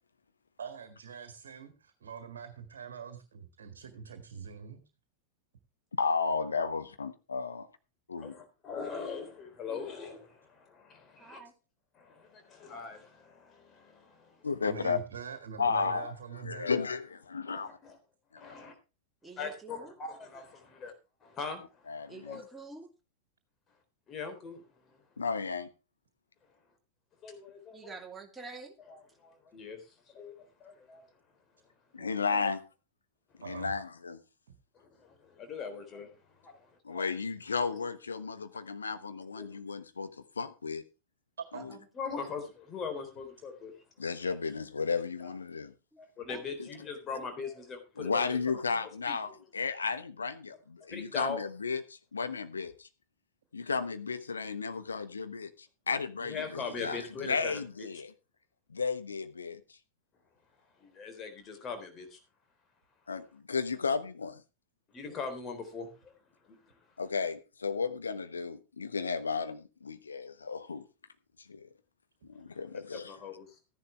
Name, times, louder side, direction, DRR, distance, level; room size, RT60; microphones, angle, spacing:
voice 1, 0.6-4.8 14.6-16.7 33.4-33.7 41.5-41.6, right 7 dB, 60° right, 1.7 m, -44 dB
voice 2, 6.0-7.7 8.1-8.3 14.4-15.0 15.6-17.8 21.9-22.4 25.2-25.7 31.9-32.6 33.4-34.2 36.8-40.1 40.4-40.8 44.0-45.7 46.6-46.7 48.0-52.9 53.5-55.5 55.9-58.1 58.7-59.6 63.1-64.4 67.0-70.8 71.5-71.7 72.2-73.1, left 5 dB, 75° left, 1.2 m, -33 dB
voice 3, 8.2-11.4 11.9-14.4 16.5-16.7 17.5-18.0 18.4-18.7 19.4-20.9 21.2-22.4 24.1-24.6 27.2-27.9 28.9-31.1 34.8-36.1 36.4-37.1 39.4-39.5 41.9-43.7 45.2-45.3 46.0-48.4 48.8-49.4 50.9-51.4 56.2-57.5 60.8-62.2 64.9-66.1 66.5-66.7 73.1-73.5, left 5 dB, 25° left, 3.6 m, -41 dB
voice 4, 11.2-11.5 15.6-16.0 19.2-19.9 22.1-22.9 27.7-28.8 32.0-32.5 41.5-41.9 45.9-46.0 46.3-46.4, right 4 dB, 10° right, 2.8 m, -48 dB
14.0 x 10.5 x 3.3 m
figure-of-eight pair, 90°, 0 cm